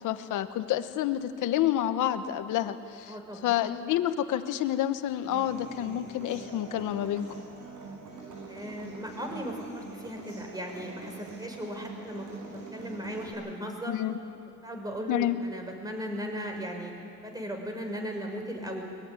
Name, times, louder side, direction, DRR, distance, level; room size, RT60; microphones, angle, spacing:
voice 1, 0.0-3.1 3.4-7.3 13.9-14.2 15.1-15.4, left 12 dB, 90° left, 10 dB, 1.2 m, -29 dB
voice 2, 3.1-3.5 8.5-13.9 14.6-16.9 17.2-18.8, equal, 10° right, 2 dB, 6.1 m, -37 dB
Human voice / Acoustic guitar, 5.3-13.3, right 4 dB, 80° right, 7.6 m, -44 dB
23.0 x 21.0 x 9.8 m, 2.6 s
cardioid pair, 90°, 30 cm